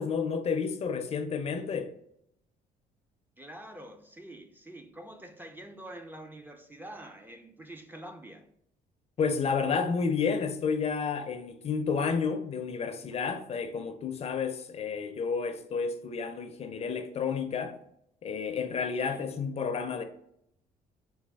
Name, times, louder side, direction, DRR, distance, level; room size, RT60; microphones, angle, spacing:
voice 1, 0.0-1.9 9.2-17.8 18.2-20.0, left 5 dB, 45° left, 0.5 m, -31 dB
voice 2, 3.4-8.5 19.0-19.3, right 1 dB, 15° right, 0.4 m, -46 dB
4.0 x 2.3 x 3.4 m
cardioid pair, 100°, 15 cm